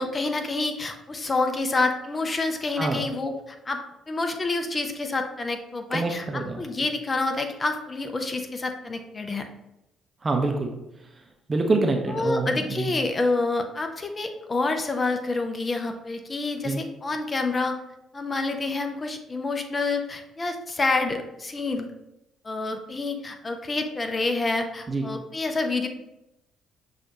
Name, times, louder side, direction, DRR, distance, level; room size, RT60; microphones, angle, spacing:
voice 1, 0.0-9.5 12.1-17.8 18.1-21.9 22.4-25.9, left 3 dB, 30° left, 5 dB, 0.6 m, -28 dB
voice 2, 5.9-6.6 10.2-10.7 11.5-12.9 16.6-16.8 24.9-25.1, right 2 dB, 30° right, 3 dB, 0.6 m, -25 dB
6.0 x 2.4 x 2.8 m, 0.88 s
figure-of-eight pair, 45°, 0 cm